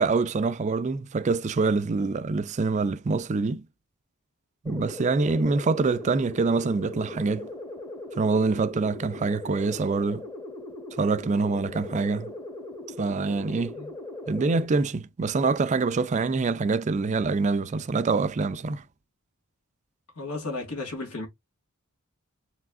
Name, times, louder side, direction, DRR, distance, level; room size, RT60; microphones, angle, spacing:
voice 1, 0.0-3.6 4.6-7.5 8.2-10.3 11.0-12.3 13.0-13.8 14.3-18.8, right 4 dB, 30° right, 0.4 m, -25 dB
sound 1, 4.7-14.7, left 2 dB, 20° left, 0.9 m, -39 dB
voice 2, 20.2-21.3, left 3 dB, 90° left, 2.4 m, -34 dB
4.7 x 3.4 x 2.4 m
head